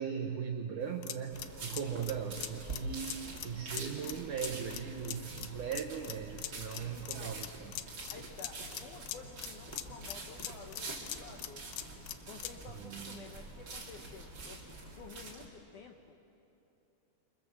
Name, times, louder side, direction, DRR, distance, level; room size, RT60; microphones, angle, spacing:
voice 1, 0.0-7.7 12.8-13.3, right 7 dB, 75° right, 4 dB, 1.9 m, -39 dB
sound 1, 0.8-12.6, left 12 dB, 90° left, 1.8 m, -44 dB
sound 2, 1.3-15.5, right 2 dB, 30° right, 2.6 m, -46 dB
voice 2, 6.9-7.4 8.1-11.7 12.2-16.2, left 5 dB, 75° left, 3 dB, 1.9 m, -52 dB
29.0 x 26.0 x 7.2 m, 2.9 s
omnidirectional pair, 4.9 m